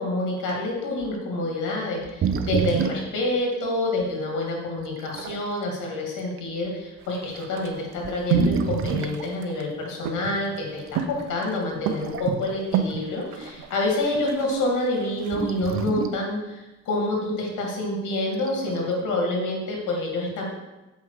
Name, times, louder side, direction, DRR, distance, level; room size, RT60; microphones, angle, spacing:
voice 1, 0.0-20.4, left 2 dB, 80° left, -1 dB, 2.5 m, -27 dB
sound 1, 1.0-1.2 2.0-3.2 4.0-4.1 4.8-5.4 6.2-6.4 7.3-7.4 8.0-9.2 10.9-11.0 11.8-12.6 12.9-13.0 15.3-16.3 18.3-18.9, right 7 dB, 45° right, 0.6 m, -28 dB
sound 2, 7.0-16.0, right 7 dB, 90° right, 0.7 m, -31 dB
7.4 x 5.4 x 4.9 m, 1.0 s
cardioid pair, 90°, 30 cm